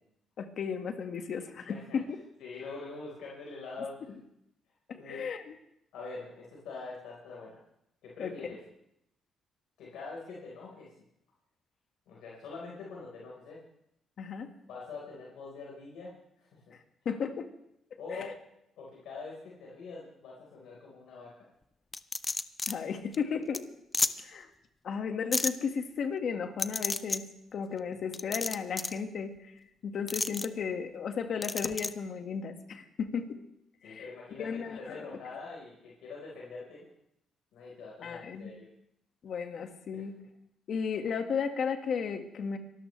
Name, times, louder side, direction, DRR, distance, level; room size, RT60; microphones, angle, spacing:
voice 1, 0.4-2.2 4.9-5.5 8.2-8.6 14.2-14.5 16.7-16.8 17.1-17.5 18.1-18.3 22.7-23.7 24.2-24.5 24.8-33.4 33.8-34.1 34.4-35.1 38.0-38.5 39.2-40.2 40.7-42.6, left 6 dB, 65° left, 6 dB, 1.8 m, -34 dB
voice 2, 1.7-2.0 2.4-4.0 4.9-5.2 5.9-7.6 8.0-8.6 9.8-10.9 12.1-13.6 14.7-16.6 18.0-18.4 18.8-21.3 33.8-36.9 37.5-38.7 39.9-40.0, left 4 dB, 85° left, -4 dB, 4.5 m, -44 dB
sound 1, 21.9-22.7 23.1-23.2 23.5-23.6 23.9-24.1 25.3-25.5 26.6-27.2 28.1-29.0 30.1-30.5 31.4-31.9, left 3 dB, 25° left, 0.7 m, -31 dB
24.5 x 13.0 x 3.3 m, 0.79 s
cardioid pair, 75°, 0 cm